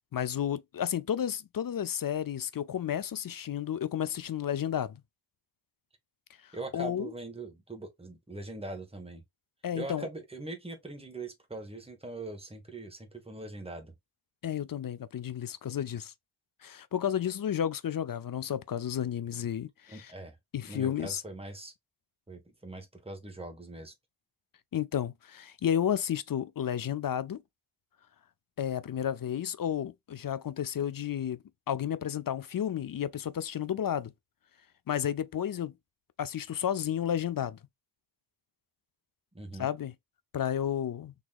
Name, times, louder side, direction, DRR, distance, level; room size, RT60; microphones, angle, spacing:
voice 1, 0.1-5.0 6.4-7.1 9.6-10.1 14.4-16.1 16.6-20.1 20.5-21.2 24.7-27.4 28.6-34.1 34.9-35.7 36.2-37.6 39.6-39.9 40.3-41.1, left 9 dB, 45° left, 0.4 m, -32 dB
voice 2, 6.5-9.2 9.7-13.9 19.9-20.4 20.7-21.7 22.3-23.9 39.3-39.7, right 2 dB, 10° right, 1.2 m, -42 dB
3.8 x 2.9 x 2.3 m
wide cardioid pair, 70°, 50 cm